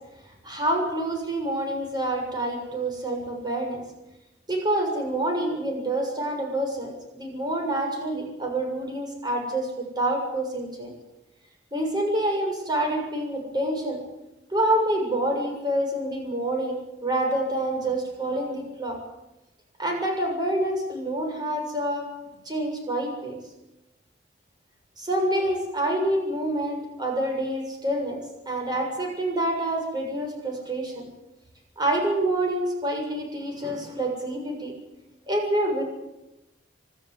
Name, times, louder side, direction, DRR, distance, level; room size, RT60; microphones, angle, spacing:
voice 1, 0.4-3.8 4.5-10.9 11.7-14.0 14.5-19.0 19.8-22.1 22.5-23.4 25.0-31.1 31.8-34.7 35.3-35.8, right 1 dB, 25° right, 2 dB, 7.1 m, -27 dB
26.5 x 13.0 x 9.7 m, 0.95 s
head